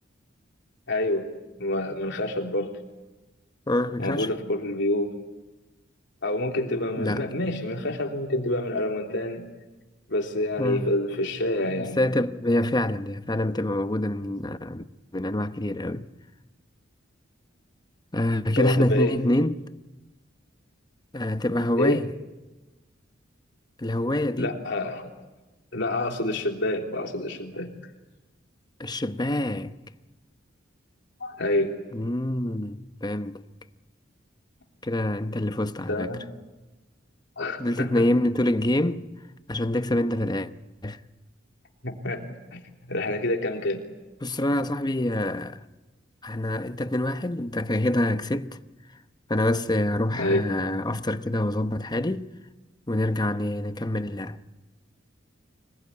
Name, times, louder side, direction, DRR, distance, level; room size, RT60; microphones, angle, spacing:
voice 1, 0.9-1.2 1.6-2.7 4.0-5.1 6.2-9.4 10.1-12.0 18.6-19.1 21.8-22.0 24.4-25.1 25.7-27.7 31.2-31.7 35.9-36.2 37.4-38.0 41.8-42.2 42.5-42.6 42.9-43.8 50.1-50.4, left 1 dB, 65° left, 3.4 m, -27 dB
voice 2, 3.7-4.3 7.0-7.4 10.6-10.9 11.7-14.8 15.1-16.1 18.1-19.7 21.1-22.1 23.8-24.6 28.8-29.8 31.9-33.4 34.8-36.1 37.6-39.0 39.5-40.5 40.8-41.0 44.2-45.6 46.2-48.6 49.3-52.3 52.9-54.4, left 1 dB, 20° left, 0.9 m, -26 dB
25.5 x 20.0 x 9.8 m
head